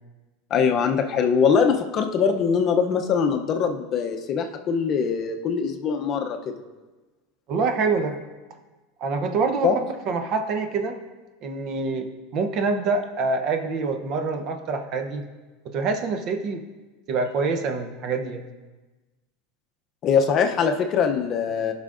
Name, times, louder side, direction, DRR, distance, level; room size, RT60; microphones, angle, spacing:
voice 1, 0.5-6.5 9.6-9.8 20.0-21.7, left 6 dB, 40° left, 5 dB, 0.6 m, -22 dB
voice 2, 7.5-8.2 9.0-11.0 11.4-15.3 15.6-16.6 17.1-18.4, right 4 dB, 45° right, 7 dB, 0.8 m, -26 dB
15.5 x 5.7 x 2.5 m, 1.2 s
supercardioid pair, 135°, 0 cm